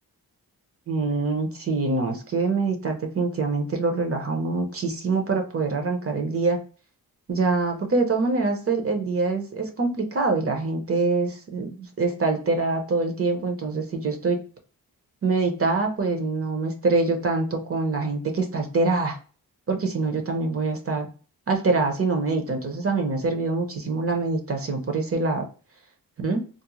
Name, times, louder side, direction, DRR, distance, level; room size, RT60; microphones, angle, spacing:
voice 1, 0.9-6.6 7.3-14.4 15.2-19.2 19.7-21.1 21.5-25.4 26.2-26.4, right 3 dB, 40° right, 4 dB, 0.7 m, -25 dB
2.5 x 2.1 x 2.9 m, 0.37 s
cardioid pair, 80°, 37 cm